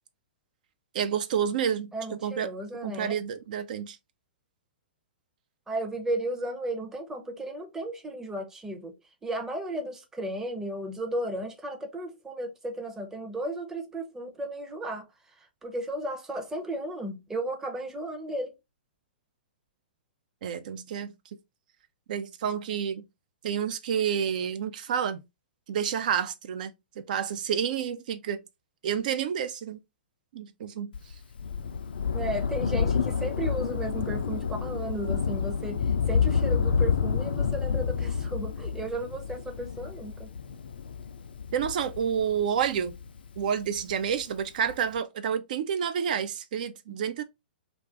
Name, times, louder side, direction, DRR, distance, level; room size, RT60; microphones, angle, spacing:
voice 1, 0.9-1.9 2.2-2.5 2.8-4.0 20.4-21.1 22.1-23.0 23.4-25.2 25.7-26.7 27.0-28.4 28.8-29.8 30.3-30.9 41.5-43.0 43.4-47.2, right 8 dB, 50° right, 0.4 m, -29 dB
voice 2, 1.9-3.2 5.7-9.0 9.2-18.5 32.1-40.3 46.9-47.0, right 1 dB, 10° right, 0.6 m, -34 dB
Thunder, 30.9-43.8 44.7-44.8, left 6 dB, 65° left, 0.4 m, -29 dB
2.4 x 2.4 x 3.3 m
figure-of-eight pair, 115°, 5 cm